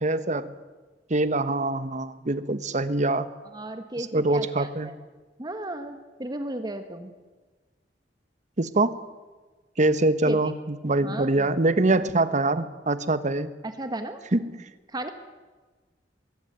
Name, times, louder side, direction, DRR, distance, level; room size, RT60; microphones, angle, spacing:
voice 1, 0.0-0.5 1.1-3.3 4.0-4.9 8.6-8.9 9.8-13.5 14.3-14.6, right 2 dB, 45° right, 13 dB, 1.2 m, -24 dB
voice 2, 3.5-4.9 5.4-7.1 10.3-10.4 10.8-11.5 13.6-14.2 14.9-15.1, right 1 dB, 25° right, 8 dB, 1.4 m, -34 dB
21.5 x 16.0 x 9.4 m, 1.3 s
head